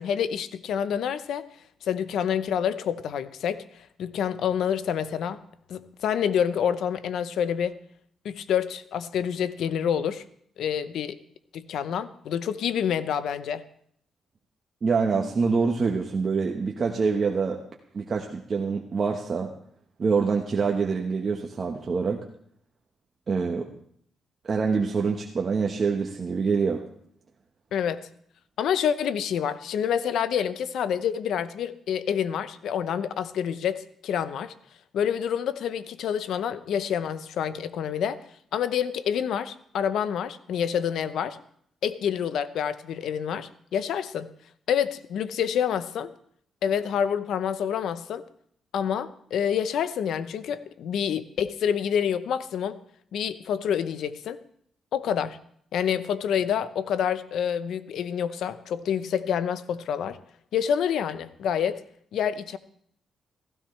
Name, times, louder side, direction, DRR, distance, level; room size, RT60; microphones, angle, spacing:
voice 1, 0.0-1.5 1.8-5.4 5.7-7.8 8.2-10.2 10.6-11.2 11.5-13.6 27.7-28.0 28.6-34.5 34.9-38.2 38.5-41.4 41.8-44.3 44.7-46.1 46.6-48.2 48.7-52.8 53.1-54.4 54.9-55.4 55.7-60.2 60.5-61.8 62.1-62.6, left 8 dB, 80° left, 13 dB, 0.7 m, -27 dB
voice 2, 14.8-17.6 17.9-19.5 20.0-22.2 23.3-23.7 24.4-26.8, right 5 dB, 45° right, 1 dB, 1.1 m, -25 dB
16.0 x 15.5 x 3.3 m, 0.64 s
cardioid pair, 90°, 0 cm